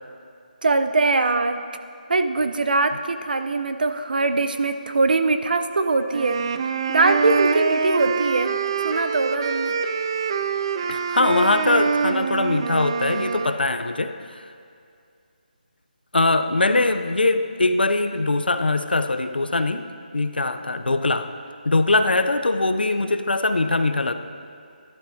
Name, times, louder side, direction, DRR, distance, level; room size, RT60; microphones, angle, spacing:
voice 1, 0.6-1.6 2.1-6.4 6.9-8.5 8.8-9.7, right 3 dB, 65° right, 9 dB, 0.7 m, -22 dB
sound 1, 6.1-13.6, right 5 dB, 30° right, 0.4 m, -25 dB
voice 2, 10.9-14.1 16.1-19.9 20.1-21.3 21.7-24.1, left 2 dB, 90° left, 8 dB, 0.7 m, -21 dB
13.5 x 11.5 x 2.8 m, 2.4 s
figure-of-eight pair, 165°, 5 cm